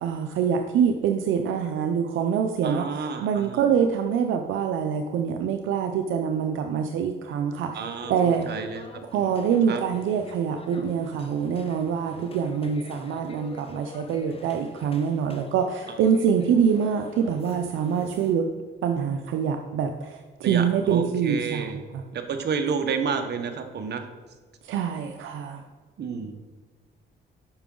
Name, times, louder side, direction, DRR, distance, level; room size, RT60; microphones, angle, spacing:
voice 1, 0.0-2.9 3.2-8.5 9.0-18.5 18.8-22.0 24.6-25.6, right 7 dB, 80° right, 6 dB, 0.6 m, -25 dB
voice 2, 2.6-3.6 7.7-9.3 9.7-9.8 20.4-21.8 22.1-24.0 26.0-26.3, right 6 dB, 55° right, 7 dB, 1.0 m, -30 dB
sound 1, 7.8-18.4, left 3 dB, 30° left, 0.9 m, -45 dB
8.8 x 5.8 x 3.8 m, 1.4 s
cardioid pair, 90°, 20 cm